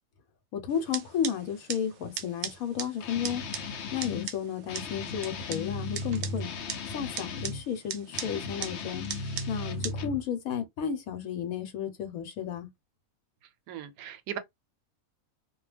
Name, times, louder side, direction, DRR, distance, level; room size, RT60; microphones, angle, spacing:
voice 1, 0.5-3.4 3.9-6.5 6.9-9.0 9.5-12.7, left 8 dB, 80° left, 1.1 m, -33 dB
sound 1, 0.7-9.9, right 9 dB, 65° right, 0.8 m, -40 dB
Guitar, 3.0-4.3 4.7-7.6 8.1-10.2, left 3 dB, 65° left, 0.7 m, -36 dB
voice 2, 13.7-14.4, right 10 dB, 90° right, 1.0 m, -38 dB
2.4 x 2.2 x 3.2 m
omnidirectional pair, 1.5 m